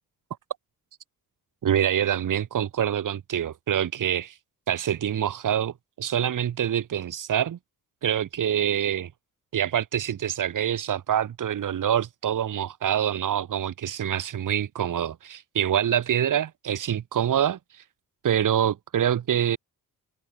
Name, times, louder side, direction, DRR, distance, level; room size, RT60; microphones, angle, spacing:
voice 1, 1.6-4.3 4.7-7.6 8.0-9.1 9.5-17.8 18.2-19.6, right 10 dB, 60° right, 2.1 m, -26 dB
open air
wide cardioid pair, 145°, 35 cm